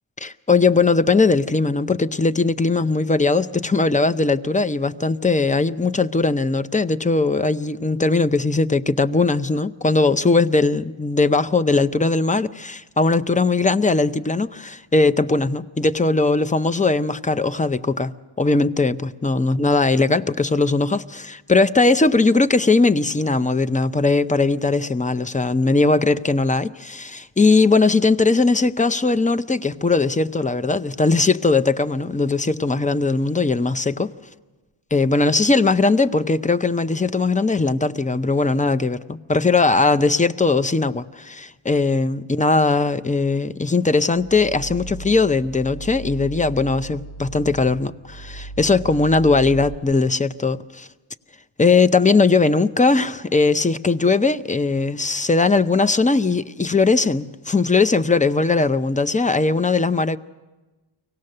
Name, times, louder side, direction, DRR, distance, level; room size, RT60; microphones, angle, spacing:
voice 1, 0.2-34.1 34.9-50.9 51.6-60.2, left 3 dB, 15° left, 13 dB, 0.6 m, -19 dB
sound 1, 44.1-49.7, right 2 dB, 65° left, 1.4 m, -36 dB
24.5 x 17.5 x 6.6 m, 1.2 s
wide cardioid pair, 70°, 49 cm